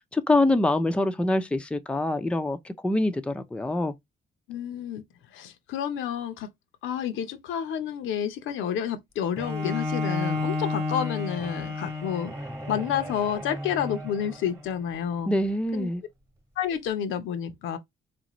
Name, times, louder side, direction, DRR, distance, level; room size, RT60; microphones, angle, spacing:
voice 1, 0.1-3.9 15.3-16.0, left 2 dB, 5° left, 0.4 m, -25 dB
voice 2, 4.5-5.0 5.3-6.5 6.8-12.3 12.7-15.3 15.7-15.9 16.6-17.8, left 9 dB, 85° left, 0.7 m, -30 dB
Bowed string instrument, 9.4-14.6, left 3 dB, 15° right, 1.1 m, -31 dB
4.1 x 2.6 x 3.0 m
cardioid pair, 90°, 20 cm